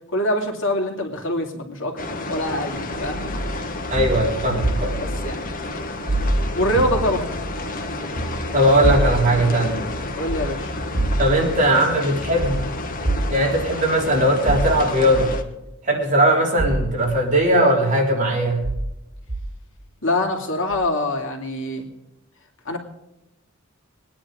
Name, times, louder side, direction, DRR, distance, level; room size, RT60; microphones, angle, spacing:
voice 1, 0.1-2.0 2.3-3.3 5.0-5.4 6.6-7.4 10.1-10.7 20.0-21.9 22.6-22.8, left 1 dB, 65° left, 2 dB, 2.5 m, -24 dB
sound 1, 2.0-15.4, left 2 dB, 40° left, 1.3 m, -31 dB
sound 2, 2.9-5.3 5.6-7.7 7.9-9.3 9.7-10.5 10.8-11.5 12.4-12.6 13.0-13.3 14.5-15.4 16.6-16.8 17.3-17.4 18.6-18.8 19.3-19.4 20.7-20.8, right 1 dB, 75° right, 4.5 m, -25 dB
voice 2, 3.9-5.0 8.5-9.8 11.2-12.7 13.3-15.3 15.8-18.6, right 1 dB, 40° right, -1 dB, 3.6 m, -19 dB
21.5 x 9.8 x 5.0 m, 0.91 s
head